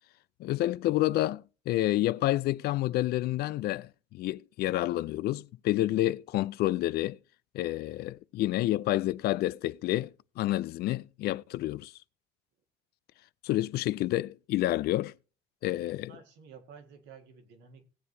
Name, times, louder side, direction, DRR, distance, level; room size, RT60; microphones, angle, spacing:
voice 1, 0.4-7.2 7.5-11.9 13.4-15.1 15.6-16.1, left 15 dB, 70° left, 0.4 m, -29 dB
voice 2, 15.6-17.8, right 6 dB, 85° right, 1.9 m, -53 dB
17.5 x 7.6 x 2.7 m
cardioid pair, 110°, 17 cm